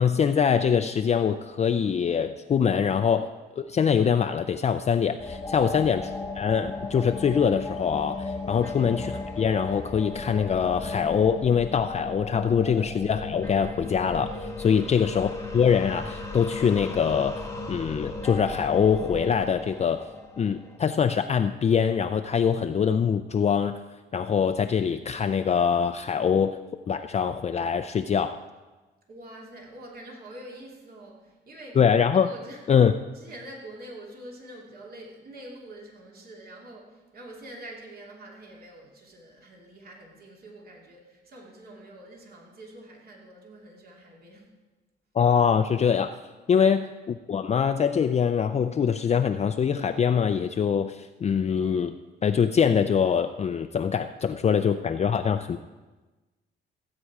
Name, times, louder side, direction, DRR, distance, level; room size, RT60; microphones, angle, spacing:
voice 1, 0.0-3.3 3.6-6.1 6.3-17.4 17.7-20.1 20.4-23.8 24.1-26.6 26.9-28.4 31.8-32.3 32.7-32.9 45.1-46.2 46.5-46.9 47.3-51.9 52.2-55.6, left 7 dB, 35° left, 7 dB, 0.4 m, -23 dB
sound 1, 5.2-21.4, left 3 dB, 15° left, 1.3 m, -36 dB
voice 2, 14.7-15.1 29.1-31.8 32.2-32.7 33.1-44.5 46.5-46.7, right 1 dB, 50° right, -1 dB, 2.6 m, -45 dB
15.5 x 8.5 x 4.7 m, 1.2 s
cardioid pair, 90°, 20 cm